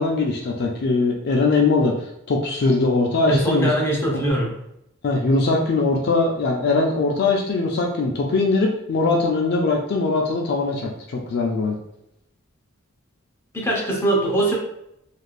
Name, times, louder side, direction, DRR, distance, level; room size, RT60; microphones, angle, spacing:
voice 1, 0.0-1.9 2.3-3.7 4.1-4.2 5.0-11.8, left 3 dB, 50° left, 0 dB, 0.4 m, -21 dB
voice 2, 3.3-4.5 13.5-14.6, right 1 dB, 10° left, -3 dB, 0.7 m, -21 dB
3.3 x 2.4 x 2.3 m, 0.82 s
head